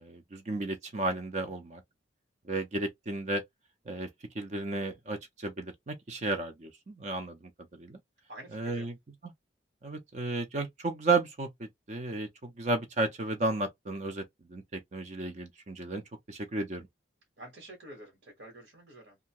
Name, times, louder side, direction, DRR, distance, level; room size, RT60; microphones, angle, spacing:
voice 1, 0.0-1.8 2.5-3.4 3.9-4.1 4.3-7.4 7.7-8.0 8.5-9.0 9.8-14.2 14.5-16.0 16.3-16.9, right 2 dB, 40° right, 0.5 m, -33 dB
voice 2, 8.3-8.9 17.4-19.2, right 1 dB, 70° right, 1.3 m, -48 dB
2.7 x 2.4 x 2.9 m
head